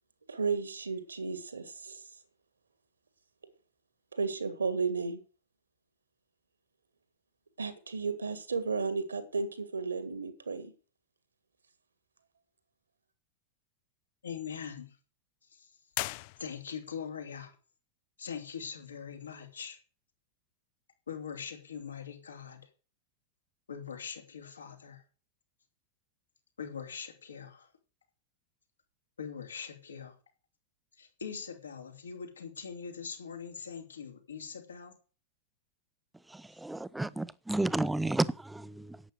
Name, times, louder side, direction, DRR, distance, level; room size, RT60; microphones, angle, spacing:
voice 1, 0.3-2.0 4.1-5.2 7.6-10.7, right 4 dB, 75° right, 1.8 m, -33 dB
voice 2, 14.2-15.0 15.5-15.7 16.4-17.5 18.2-19.8 21.1-22.7 23.7-25.0 26.6-27.7 29.2-30.2 31.0-35.0, left 7 dB, 70° left, 3.1 m, -42 dB
sound 1, 15.9-17.0, left 21 dB, 45° left, 0.5 m, -38 dB
voice 3, 36.3-39.0, right 2 dB, 5° right, 0.6 m, -32 dB
11.0 x 8.7 x 6.4 m
figure-of-eight pair, 90°, 0 cm